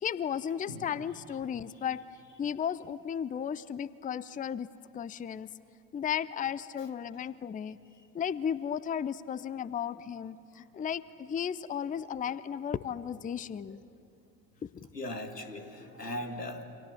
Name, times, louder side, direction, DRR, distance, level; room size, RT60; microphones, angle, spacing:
voice 1, 0.0-2.0 2.4-4.7 4.9-5.5 5.9-7.8 8.1-13.8 14.6-14.9, left 8 dB, 15° left, 18 dB, 0.6 m, -34 dB
voice 2, 14.9-16.6, left 1 dB, 85° left, 7 dB, 2.0 m, -39 dB
29.0 x 26.5 x 7.3 m, 2.5 s
figure-of-eight pair, 60°, 47 cm